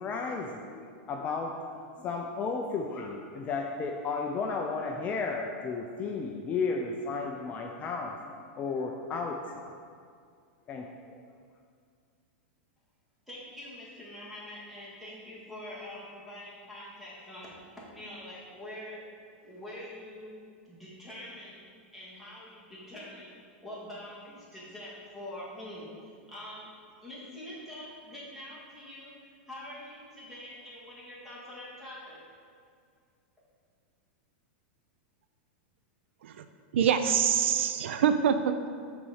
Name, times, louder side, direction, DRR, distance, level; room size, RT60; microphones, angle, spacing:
voice 1, 0.0-1.6 2.0-8.2 8.6-9.7 10.7-10.9, left 4 dB, 25° left, 1 dB, 0.4 m, -33 dB
voice 2, 13.3-19.0 19.4-20.3 20.6-21.6 21.9-23.3 23.6-26.7 27.0-32.2, left 1 dB, ahead, -8 dB, 1.7 m, -45 dB
voice 3, 36.7-38.7, right 8 dB, 80° right, 9 dB, 0.4 m, -25 dB
6.1 x 4.1 x 6.4 m, 2.2 s
supercardioid pair, 155°, 6 cm